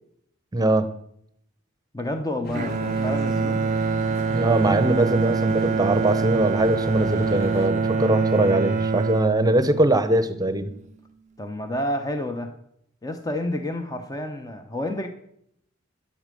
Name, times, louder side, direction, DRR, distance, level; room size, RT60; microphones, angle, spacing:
voice 1, 0.5-0.9 4.3-10.7, right 1 dB, 20° right, 12 dB, 0.9 m, -22 dB
voice 2, 1.9-3.6 11.4-12.5 13.0-15.1, left 1 dB, 20° left, 6 dB, 0.9 m, -29 dB
sound 1, 2.1-8.9, right 1 dB, 75° left, 3.0 m, -37 dB
sound 2, 2.4-7.7, left 1 dB, 50° left, 1.4 m, -40 dB
Bowed string instrument, 2.5-10.8, right 4 dB, 35° right, 0.5 m, -25 dB
11.0 x 8.7 x 7.6 m, 0.72 s
head